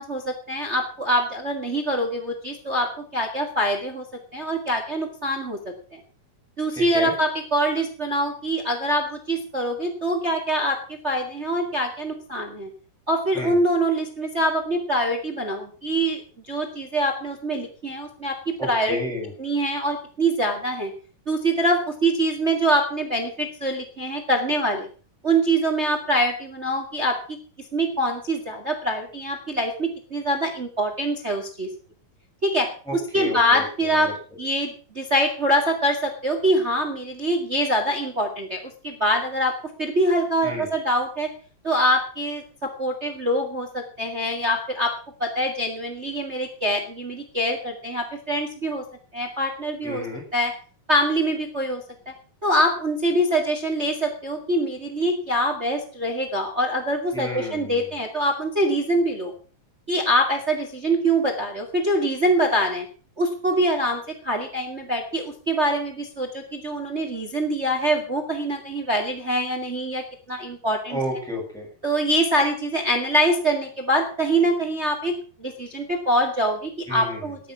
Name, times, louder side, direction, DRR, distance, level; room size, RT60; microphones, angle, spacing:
voice 1, 0.0-4.0 4.3-5.6 6.6-12.7 13.1-19.0 19.4-20.9 21.3-24.9 25.2-27.4 27.7-31.7 32.4-34.1 34.4-39.5 39.8-41.3 41.6-44.9 45.2-48.8 49.1-50.0 50.3-50.5 50.9-52.1 52.4-59.3 59.9-62.9 63.2-71.0 71.8-75.1 75.4-77.4, right 1 dB, 30° right, 6 dB, 1.3 m, -24 dB
voice 2, 6.7-7.1 13.3-13.6 18.6-19.3 32.9-34.1 40.4-40.7 49.8-50.2 57.1-58.0 70.9-71.7 76.9-77.3, left 1 dB, ahead, -2 dB, 7.6 m, -31 dB
14.0 x 11.5 x 6.1 m, 0.40 s
omnidirectional pair, 4.2 m